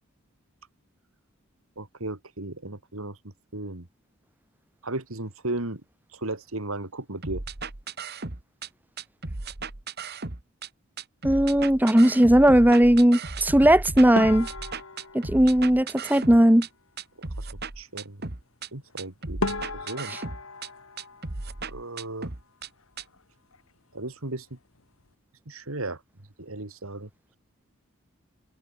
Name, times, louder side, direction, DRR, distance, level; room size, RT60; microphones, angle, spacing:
voice 1, 1.8-3.2 3.5-3.9 4.8-5.8 6.1-7.4 17.3-17.5 17.7-18.2 18.7-20.1 21.7-22.3 23.9-24.6 25.5-26.0 26.4-27.4, right 2 dB, 75° right, 2.7 m, -35 dB
sound 1, 7.2-8.7 9.0-10.7 11.0-16.7 17.0-18.7 19.0-20.7 21.0-22.7 23.0-23.1, right 3 dB, 45° right, 1.6 m, -36 dB
voice 2, 11.2-14.5 15.1-16.7, right 1 dB, 10° right, 0.7 m, -18 dB
sound 2, 14.2-16.6 18.9-19.0 19.4-22.2 22.4-23.2 23.5-23.7 24.0-24.1 24.8-25.1, left 2 dB, 75° left, 3.6 m, -36 dB
head